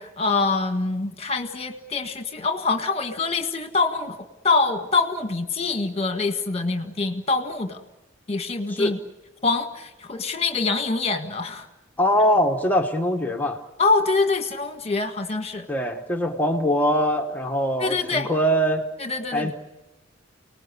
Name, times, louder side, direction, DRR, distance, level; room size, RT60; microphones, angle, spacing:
voice 1, 0.0-4.2 4.4-7.8 8.3-9.0 9.4-11.7 13.8-15.7 17.8-18.3 19.0-19.5, left 3 dB, 30° left, 7 dB, 1.7 m, -25 dB
voice 2, 12.0-13.6 15.7-18.9 19.3-19.5, equal, 10° left, 4 dB, 1.2 m, -22 dB
29.0 x 19.5 x 8.4 m, 1.0 s
head